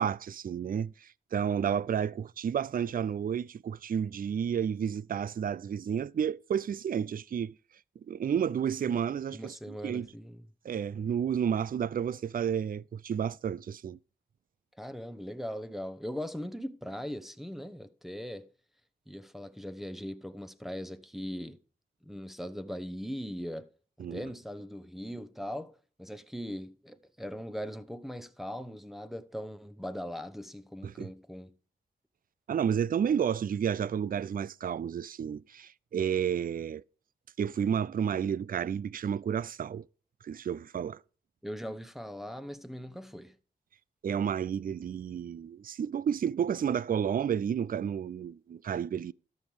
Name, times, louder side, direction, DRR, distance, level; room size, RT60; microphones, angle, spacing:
voice 1, 0.0-7.5 8.1-10.1 10.6-14.0 24.0-24.2 30.8-31.1 32.5-36.8 37.4-39.9 40.2-41.0 44.0-49.1, right 8 dB, 45° right, 0.4 m, -31 dB
voice 2, 9.3-10.5 14.7-18.5 19.1-21.6 22.0-23.7 24.1-31.5 41.4-43.4, equal, ahead, 0.9 m, -40 dB
13.0 x 5.4 x 4.9 m
cardioid pair, 45°, 20 cm